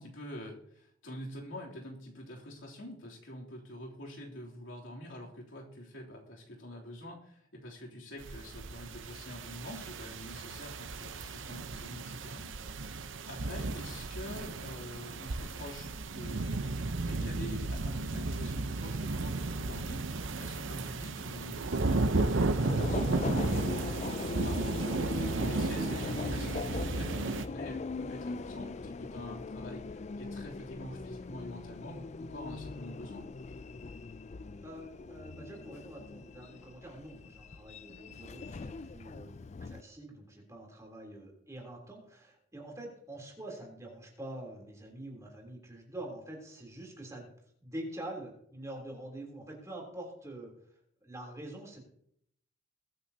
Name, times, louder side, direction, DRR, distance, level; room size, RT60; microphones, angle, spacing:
voice 1, 0.0-13.0 13.3-33.2, left 1 dB, 75° left, -2 dB, 3.2 m, -46 dB
sound 1, 8.2-27.5, right 2 dB, 75° right, 0.8 m, -34 dB
Subway metro underground, 22.6-39.8, left 4 dB, 35° left, 0.4 m, -41 dB
voice 2, 34.6-47.3 47.6-50.5 51.0-51.8, right 1 dB, 15° right, -1 dB, 3.4 m, -45 dB
21.5 x 9.4 x 2.9 m, 0.69 s
head